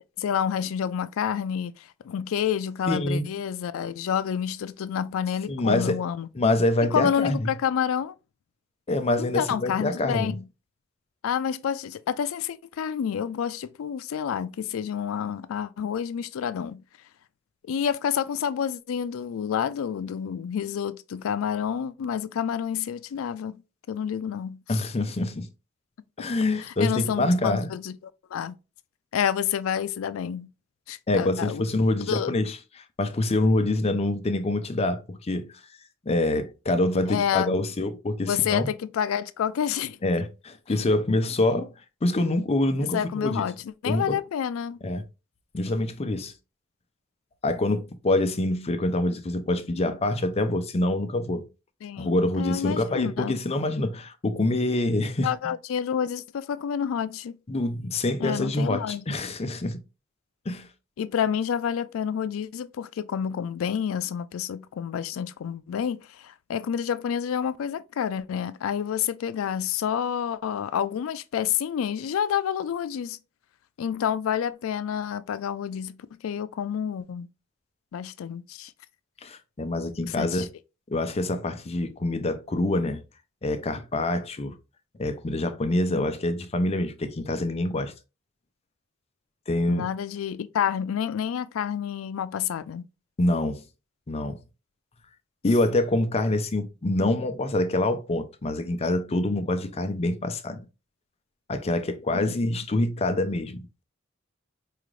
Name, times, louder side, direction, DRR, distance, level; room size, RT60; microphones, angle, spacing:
voice 1, 0.2-6.3 6.9-8.1 9.2-10.4 11.2-16.8 17.7-23.6 23.9-24.8 26.2-26.3 26.6-28.0 28.3-28.5 29.1-30.5 30.9-31.6 32.0-32.3 37.1-37.6 38.3-40.0 42.9-43.6 43.8-44.8 51.8-53.4 55.2-57.4 58.2-59.0 61.0-73.2 73.8-77.3 77.9-78.7 80.1-80.5 89.7-92.9 102.1-102.5, left 8 dB, 85° left, 0.3 m, -29 dB
voice 2, 2.9-3.3 5.5-6.0 6.3-7.5 8.9-10.4 24.7-25.5 26.2-27.7 31.1-32.6 33.0-35.5 36.1-38.7 40.0-41.7 42.0-43.4 43.9-44.2 44.8-45.0 45.5-46.3 47.4-51.4 52.0-55.3 57.5-59.8 60.5-60.7 79.2-80.5 80.9-83.0 83.4-84.6 85.0-87.9 89.5-89.8 93.2-93.6 94.1-94.4 95.4-100.6 101.5-103.8, left 2 dB, 30° left, 0.5 m, -26 dB
4.8 x 2.5 x 3.1 m
head